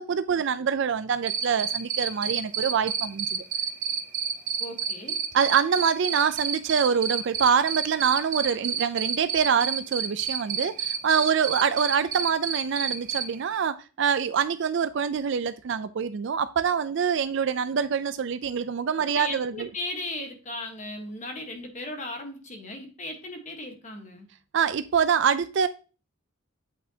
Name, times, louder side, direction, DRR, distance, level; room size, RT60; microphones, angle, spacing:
voice 1, 0.0-3.4 5.3-19.7 24.5-25.7, right 7 dB, 60° right, 0.4 m, -25 dB
Cricket, 1.3-13.2, right 7 dB, 40° right, 0.8 m, -28 dB
voice 2, 4.6-5.2 19.1-24.3, left 1 dB, 35° left, 1.2 m, -36 dB
8.3 x 6.2 x 2.8 m
head